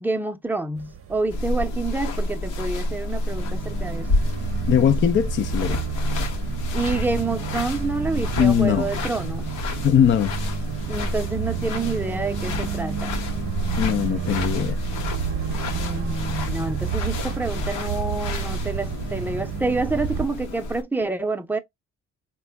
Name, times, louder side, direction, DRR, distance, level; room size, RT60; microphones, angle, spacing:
voice 1, 0.0-4.1 6.7-9.5 10.9-13.2 15.7-21.6, right 3 dB, 5° right, 0.6 m, -28 dB
sound 1, 0.8-20.3, right 8 dB, 50° right, 0.7 m, -31 dB
sound 2, 1.3-20.8, left 2 dB, 85° left, 0.9 m, -29 dB
voice 2, 4.7-5.8 8.4-8.9 9.8-10.3 13.8-14.8, left 9 dB, 40° left, 0.4 m, -20 dB
4.1 x 2.3 x 3.3 m
cardioid pair, 90°, 30 cm